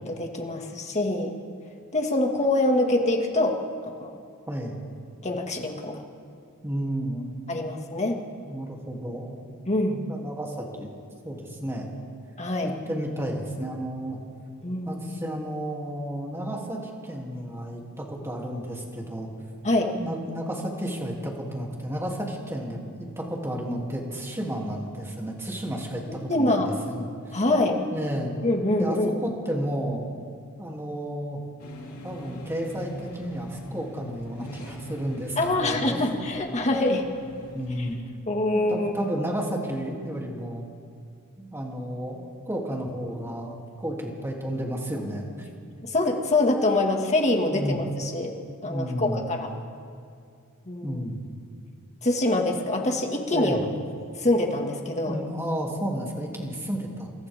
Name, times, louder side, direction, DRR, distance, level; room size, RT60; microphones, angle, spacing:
voice 1, 0.1-1.3 1.9-3.6 3.8-4.2 5.2-6.0 7.5-8.2 9.7-10.1 12.4-12.7 14.6-15.1 19.6-19.9 26.3-26.7 27.3-27.8 28.4-29.2 35.4-37.1 38.3-39.1 45.9-48.3 48.6-49.5 50.7-51.0 52.0-53.6 54.2-55.2, left 2 dB, 30° left, 2 dB, 2.2 m, -25 dB
voice 2, 4.5-4.8 6.6-7.3 8.5-9.4 10.1-10.9 11.2-11.9 12.6-14.2 14.8-19.3 20.0-27.4 27.9-28.3 28.7-30.0 30.6-31.4 32.0-36.0 37.5-38.0 38.5-40.6 41.4-45.5 47.5-47.8 48.7-49.2 50.8-51.2 53.3-53.6 55.1-57.1, equal, 10° right, -2 dB, 3.1 m, -32 dB
sound 1, 31.6-38.0, equal, 90° left, 3.4 m, -41 dB
27.5 x 27.0 x 3.7 m, 2.3 s
head